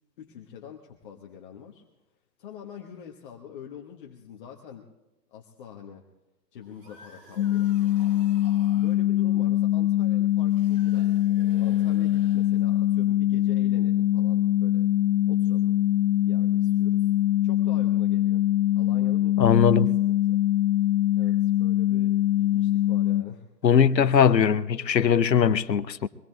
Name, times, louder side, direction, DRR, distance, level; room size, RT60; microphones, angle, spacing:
voice 1, 0.2-1.8 2.4-4.8 5.3-6.0 6.5-7.7 8.7-11.3 11.6-14.9 15.3-15.8 16.2-17.1 17.4-18.4 18.7-20.4 21.1-23.5 23.9-24.3 25.3-25.6, left 8 dB, 30° left, 1.4 m, -44 dB
sound 1, 6.6-9.0 10.4-12.9, right 1 dB, 35° right, 5.6 m, -51 dB
sound 2, 7.4-23.2, left 13 dB, 55° left, 0.6 m, -23 dB
voice 2, 19.4-19.9 23.6-26.1, left 7 dB, 90° left, 0.9 m, -20 dB
24.0 x 19.5 x 2.3 m
hypercardioid pair, 145°, 49 cm